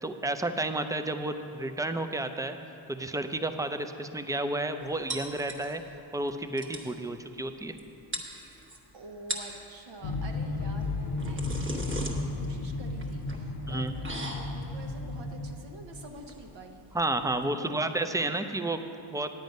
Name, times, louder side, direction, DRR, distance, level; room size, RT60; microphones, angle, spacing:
voice 1, 0.0-2.6 2.9-5.8 6.1-7.8 13.7-13.9 16.9-18.8 19.1-19.3, right 2 dB, 10° right, 8 dB, 0.4 m, -31 dB
sound 1, 5.1-6.0 6.3-6.4 6.6-6.9 7.8-7.9 8.1-8.8 9.2-9.6 10.8-17.4, right 1 dB, 25° right, 1.2 m, -39 dB
voice 2, 8.9-16.8 17.4-17.7, right 2 dB, 65° right, 2 dB, 1.0 m, -47 dB
sound 2, 10.0-15.5, left 3 dB, 50° left, 0.8 m, -34 dB
9.3 x 9.2 x 5.3 m, 2.9 s
cardioid pair, 100°, 49 cm